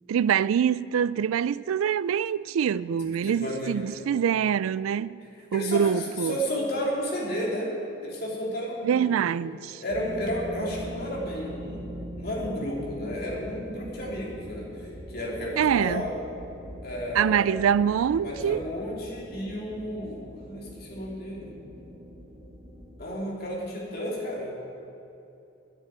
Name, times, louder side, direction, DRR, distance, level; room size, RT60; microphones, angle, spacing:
voice 1, 0.1-5.2 5.5-6.4 8.8-9.8 15.6-16.1 17.1-18.6, right 8 dB, 90° right, 0.3 m, -25 dB
voice 2, 3.0-3.8 5.5-7.7 8.0-9.2 9.8-16.1 16.8-17.5 18.2-21.5 23.0-24.5, equal, 50° left, 3.0 m, -32 dB
sound 1, 9.9-23.0, equal, ahead, 2.2 m, -42 dB
11.0 x 10.0 x 9.2 m
head